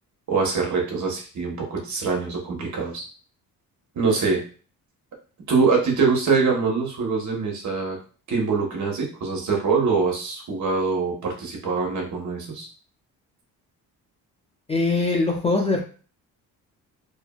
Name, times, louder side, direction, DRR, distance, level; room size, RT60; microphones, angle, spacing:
voice 1, 0.3-3.0 3.9-4.4 5.5-8.0 8.3-12.7, right 4 dB, 55° right, 0 dB, 1.0 m, -24 dB
voice 2, 14.7-15.8, left 3 dB, 20° left, 0 dB, 0.4 m, -22 dB
2.8 x 2.5 x 2.3 m, 0.38 s
cardioid pair, 100°, 36 cm